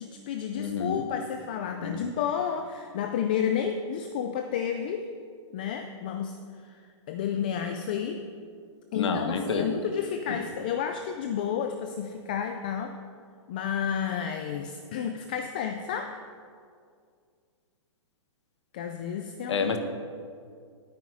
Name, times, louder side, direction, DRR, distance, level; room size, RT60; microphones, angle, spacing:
voice 1, 0.0-5.1 5.5-6.4 6.6-6.8 7.1-8.2 8.9-13.0 13.5-16.2 18.7-19.7, left 8 dB, 20° left, 6 dB, 0.3 m, -31 dB
voice 2, 0.6-1.0 1.8-2.1 8.9-9.7 19.5-19.8, left 5 dB, 65° left, 7 dB, 1.5 m, -28 dB
17.0 x 9.3 x 4.9 m, 2.2 s
hypercardioid pair, 175°, 16 cm